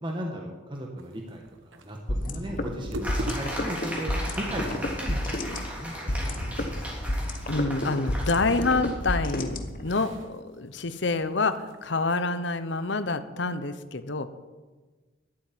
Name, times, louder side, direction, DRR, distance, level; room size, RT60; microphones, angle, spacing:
voice 1, 0.0-2.0 2.2-6.6, equal, 25° right, 1 dB, 1.4 m, -36 dB
sound 1, 1.0-12.2, right 1 dB, 80° right, 1.3 m, -44 dB
sound 2, 2.1-10.1, left 1 dB, 45° left, 1.2 m, -31 dB
sound 3, 3.0-9.4, equal, 5° right, 3.3 m, -37 dB
voice 2, 7.5-14.3, left 3 dB, 70° left, 11 dB, 0.9 m, -27 dB
11.5 x 9.0 x 9.3 m, 1.3 s
head